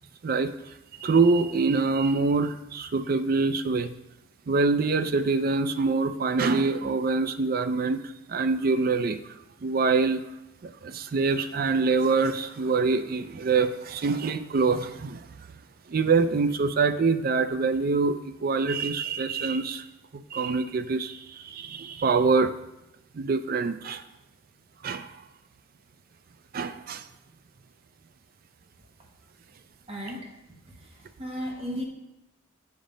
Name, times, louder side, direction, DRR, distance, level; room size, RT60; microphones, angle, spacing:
voice 1, 0.2-3.9 4.5-9.3 9.6-10.2 10.6-15.3 15.9-19.9 20.1-22.5 23.1-24.0 24.8-25.2 26.5-27.1, right 4 dB, 50° right, 11 dB, 0.4 m, -25 dB
voice 2, 29.9-30.3 31.2-31.8, equal, 30° right, 0 dB, 1.2 m, -33 dB
7.3 x 5.3 x 5.1 m, 0.93 s
head